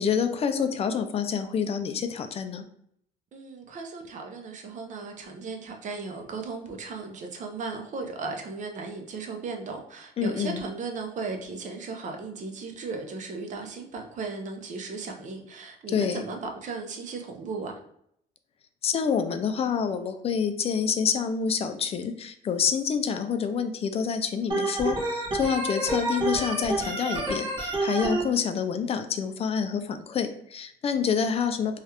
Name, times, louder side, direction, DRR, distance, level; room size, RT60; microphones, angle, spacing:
voice 1, 0.0-2.6 10.2-10.6 15.9-16.2 18.8-31.8, left 6 dB, 35° left, 8 dB, 0.3 m, -27 dB
voice 2, 3.3-17.7, right 4 dB, 45° right, 3 dB, 0.6 m, -36 dB
Organ, 24.5-28.2, right 2 dB, 25° right, 1.2 m, -28 dB
3.1 x 2.4 x 2.8 m, 0.70 s
cardioid pair, 110°, 17 cm